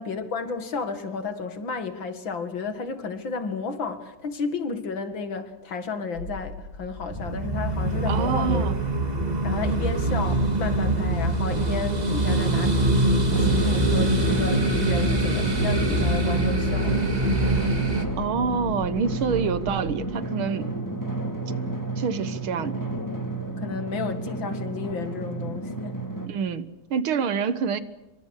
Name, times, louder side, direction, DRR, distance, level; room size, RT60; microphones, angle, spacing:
voice 1, 0.0-8.7 9.4-17.1 23.6-26.0, left 4 dB, 60° left, 9 dB, 2.8 m, -32 dB
sound 1, 6.1-20.0, left 1 dB, 90° left, 8.3 m, -39 dB
sound 2, 7.1-18.0, right 2 dB, 20° right, 2.3 m, -24 dB
voice 2, 8.1-8.8 18.2-20.7 22.0-22.8 26.2-27.8, right 6 dB, 75° right, 14 dB, 2.1 m, -27 dB
Drum, 13.3-26.3, right 2 dB, 10° left, 2.7 m, -31 dB
26.5 x 24.5 x 6.5 m, 0.99 s
omnidirectional pair, 2.4 m